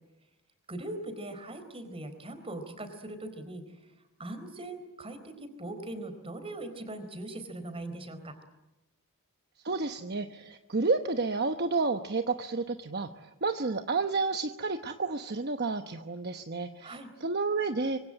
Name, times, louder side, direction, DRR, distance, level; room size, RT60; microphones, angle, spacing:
voice 1, 0.7-3.6 4.2-8.3 16.8-17.1, right 1 dB, 25° right, 9 dB, 4.1 m, -40 dB
voice 2, 9.6-18.0, right 3 dB, 45° right, 7 dB, 1.0 m, -31 dB
25.5 x 25.0 x 9.0 m, 1.0 s
head